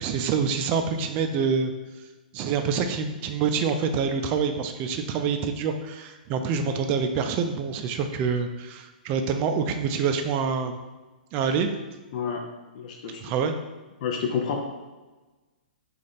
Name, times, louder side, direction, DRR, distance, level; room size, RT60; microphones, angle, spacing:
voice 1, 0.0-1.7 2.0-2.1 2.3-10.8 11.3-11.7 13.2-13.5, right 6 dB, 35° right, 6 dB, 0.4 m, -26 dB
voice 2, 12.7-13.2 14.0-14.6, left 6 dB, 50° left, 1 dB, 0.5 m, -29 dB
3.2 x 2.5 x 4.0 m, 1.2 s
hypercardioid pair, 130°, 5 cm